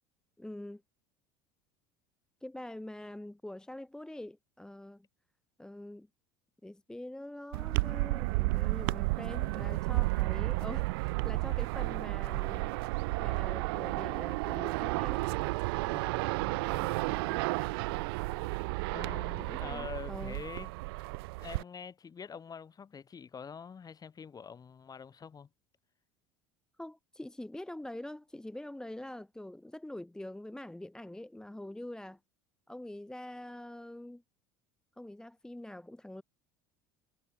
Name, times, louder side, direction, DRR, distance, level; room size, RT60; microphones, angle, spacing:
voice 1, 0.4-0.8 2.4-5.1 5.6-6.1 6.6-12.7 13.2-15.3 17.1-17.4 19.4-20.4 26.8-32.2 32.7-34.2 35.0-36.2, left 1 dB, 5° left, 1.0 m, -44 dB
sound 1, 7.5-21.6, right 25 dB, 75° right, 0.9 m, -32 dB
voice 2, 15.9-17.0 18.9-20.7 21.4-25.5, left 6 dB, 30° left, 5.3 m, -46 dB
hypercardioid pair, 85°, 12 cm